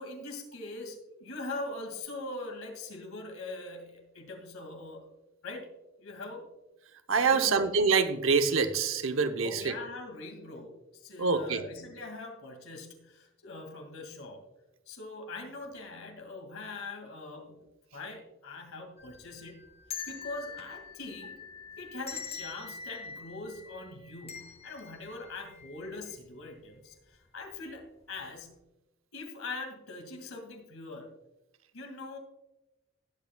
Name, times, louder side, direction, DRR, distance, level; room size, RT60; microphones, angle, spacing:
voice 1, 0.0-5.1 5.4-5.7 6.0-6.5 7.3-7.7 9.4-14.4 14.9-19.7 20.1-21.4 21.8-28.6 29.1-31.1 31.7-32.2, left 2 dB, 90° left, 3 dB, 2.2 m, -42 dB
voice 2, 7.1-9.7 11.2-11.6, right 5 dB, 75° right, 8 dB, 0.8 m, -26 dB
sound 1, 19.0-26.1 26.5-26.6 27.5-27.8 28.2-28.4, left 6 dB, 30° left, 0.8 m, -44 dB
19.0 x 8.2 x 2.3 m, 0.98 s
head